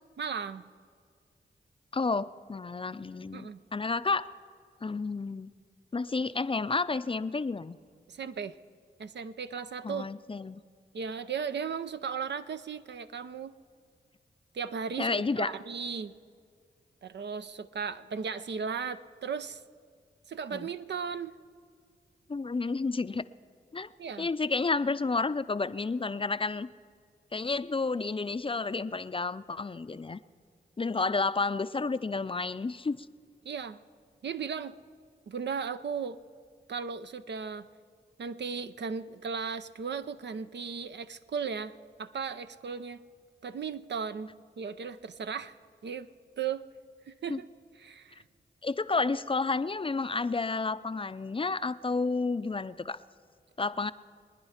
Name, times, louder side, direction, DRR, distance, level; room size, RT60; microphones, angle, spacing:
voice 1, 0.2-0.7 3.3-3.6 8.1-8.6 9.0-10.1 10.9-13.5 14.5-16.1 17.0-19.6 20.3-21.4 24.0-24.3 33.4-33.8 34.2-34.8 35.3-36.2 36.7-37.7 38.2-43.0 43.4-44.3 44.6-45.6 45.8-46.1 46.4-46.6 47.1-47.5 47.8-48.2, right 6 dB, 70° right, 11 dB, 0.6 m, -36 dB
voice 2, 1.9-4.3 4.8-5.5 5.9-7.8 9.8-10.6 15.0-15.5 20.5-20.7 22.3-23.2 23.7-23.9 24.2-26.7 27.3-30.2 30.8-33.1 47.3-47.4 48.6-53.0 53.6-53.9, left 3 dB, 30° left, 14 dB, 0.5 m, -31 dB
23.5 x 9.8 x 5.8 m, 2.1 s
cardioid pair, 45°, 19 cm